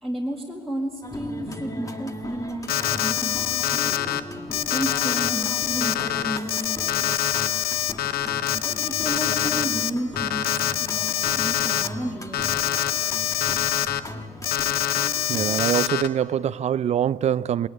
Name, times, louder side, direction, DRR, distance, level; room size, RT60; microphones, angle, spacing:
voice 1, 0.0-3.6 4.7-7.3 8.5-10.5 10.8-12.7 13.9-14.0, right 1 dB, ahead, 2.0 m, -32 dB
sound 1, 1.0-15.6, left 1 dB, 20° left, 1.5 m, -37 dB
Alarm, 2.7-4.2 4.5-9.9 10.2-11.9 12.3-14.0 14.4-16.1, left 12 dB, 65° left, 0.9 m, -25 dB
voice 2, 15.3-17.7, right 9 dB, 40° right, 0.5 m, -24 dB
20.5 x 19.0 x 9.8 m
cardioid pair, 110°, 17 cm